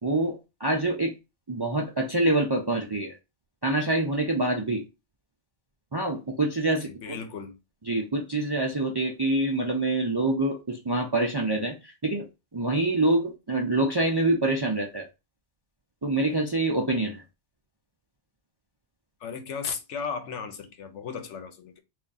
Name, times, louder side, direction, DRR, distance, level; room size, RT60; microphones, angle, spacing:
voice 1, 0.0-1.1 1.5-3.2 3.6-4.8 5.9-7.2 7.9-12.3 12.5-15.1 16.0-17.2, right 2 dB, 40° right, 0.3 m, -26 dB
voice 2, 6.9-7.6 19.2-21.8, left 6 dB, 80° left, 1.0 m, -35 dB
3.4 x 2.5 x 3.9 m
omnidirectional pair, 1.2 m